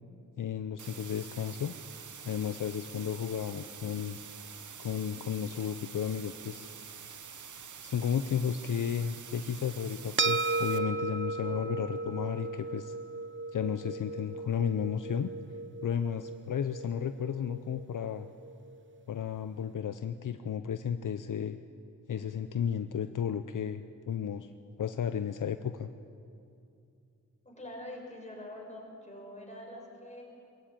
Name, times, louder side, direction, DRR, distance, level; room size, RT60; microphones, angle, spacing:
voice 1, 0.4-1.7 2.2-4.2 4.8-6.7 7.8-12.9 13.5-15.3 15.8-18.3 19.1-21.6 22.1-24.5 24.8-25.9, left 8 dB, 70° left, 10 dB, 0.7 m, -33 dB
sound 1, 0.8-10.8, right 7 dB, 65° right, 1.0 m, -47 dB
sound 2, 10.2-18.8, right 3 dB, 35° right, 0.8 m, -36 dB
voice 2, 27.4-30.2, left 1 dB, 20° left, 0 dB, 6.1 m, -45 dB
21.5 x 14.5 x 8.9 m, 2.6 s
cardioid pair, 65°, 33 cm